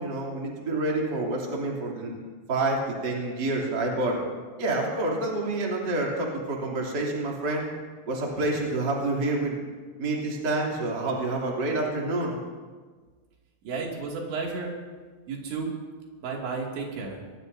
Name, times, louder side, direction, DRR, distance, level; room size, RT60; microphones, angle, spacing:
voice 1, 0.0-2.1 2.5-4.2 4.6-7.7 8.1-9.6 10.0-12.4, right 2 dB, 25° right, -2 dB, 2.8 m, -28 dB
voice 2, 13.6-14.7 15.3-15.7 16.2-17.2, right 4 dB, 85° right, -1 dB, 4.7 m, -32 dB
25.0 x 19.5 x 2.7 m, 1.5 s
omnidirectional pair, 5.1 m